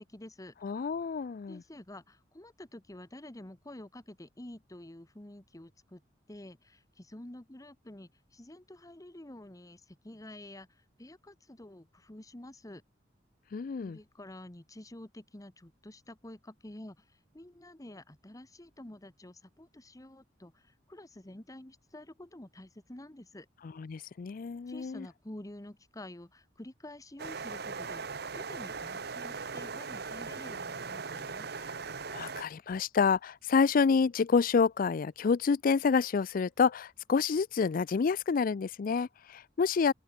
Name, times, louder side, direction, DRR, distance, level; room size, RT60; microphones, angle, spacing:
voice 1, 0.0-0.5 1.5-6.0 6.3-12.8 13.8-23.5 24.7-28.0 28.3-31.5, left 1 dB, 20° left, 1.2 m, -49 dB
voice 2, 0.6-1.6 13.5-14.0 23.8-25.1 31.5-31.7 32.0-39.9, left 5 dB, 50° left, 0.4 m, -28 dB
sound 1, 27.2-32.4, right 5 dB, 60° right, 1.3 m, -39 dB
open air
head